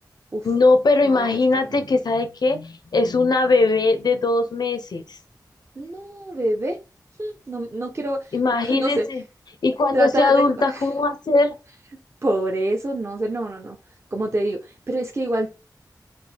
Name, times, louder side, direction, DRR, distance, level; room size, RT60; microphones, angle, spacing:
voice 1, 0.4-5.2 8.3-9.2 9.6-11.6, left 3 dB, 70° left, 8 dB, 0.6 m, -20 dB
voice 2, 1.1-1.4 1.7-1.9 5.8-6.8 7.2-8.3 8.6-9.1 9.9-10.9 12.2-13.8 14.1-15.5, right 1 dB, 40° right, 0 dB, 0.7 m, -26 dB
5.2 x 2.1 x 3.3 m, 0.29 s
wide cardioid pair, 90°, 7 cm